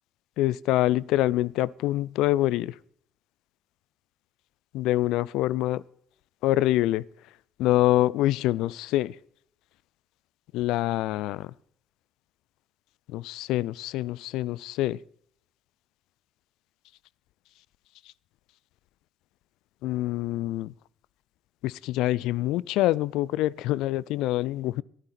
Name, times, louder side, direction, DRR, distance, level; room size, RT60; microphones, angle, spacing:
voice 1, 0.4-2.7 4.7-5.8 6.4-7.0 7.6-9.2 10.5-11.5 13.1-15.0 19.8-20.7 21.6-24.8, left 15 dB, 70° left, 0.4 m, -25 dB
15.0 x 12.0 x 4.3 m
hypercardioid pair, 55°, 0 cm